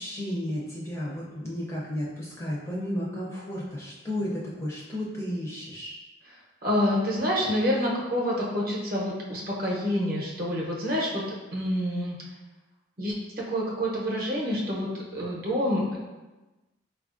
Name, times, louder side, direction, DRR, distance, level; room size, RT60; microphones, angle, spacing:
voice 1, 0.0-5.9, equal, 15° left, -5 dB, 0.4 m, -33 dB
voice 2, 6.6-11.2 11.5-12.2 13.0-13.2 13.5-16.0, equal, 50° right, -4 dB, 0.7 m, -27 dB
4.0 x 2.3 x 2.4 m, 1.1 s
head